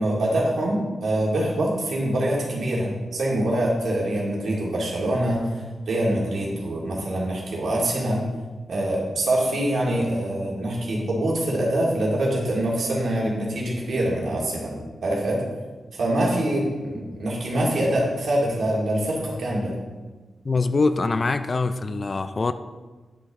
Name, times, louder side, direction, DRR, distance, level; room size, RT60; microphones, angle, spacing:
voice 1, 0.0-5.5 5.9-8.2 8.7-15.4 15.9-19.7, right 1 dB, 70° right, -4 dB, 2.4 m, -24 dB
voice 2, 20.4-22.5, left 3 dB, 40° left, 11 dB, 0.4 m, -23 dB
10.5 x 5.6 x 3.7 m, 1.3 s
wide cardioid pair, 115°, 0 cm